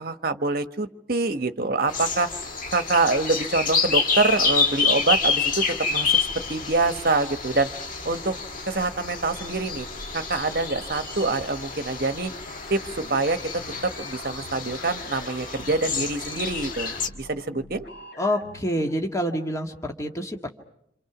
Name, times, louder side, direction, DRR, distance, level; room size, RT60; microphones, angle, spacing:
voice 1, 0.0-2.3 2.7-7.7 8.0-8.4 8.7-9.9 10.1-12.3 12.7-17.8, right 3 dB, 50° right, 9 dB, 1.2 m, -25 dB
sound 1, 1.9-17.1, left 4 dB, 45° left, 1.8 m, -28 dB
sound 2, 13.0-19.0, left 1 dB, 60° left, 3.8 m, -45 dB
voice 2, 18.2-20.5, equal, 15° left, 2 dB, 1.7 m, -27 dB
28.5 x 27.0 x 6.0 m, 0.75 s
head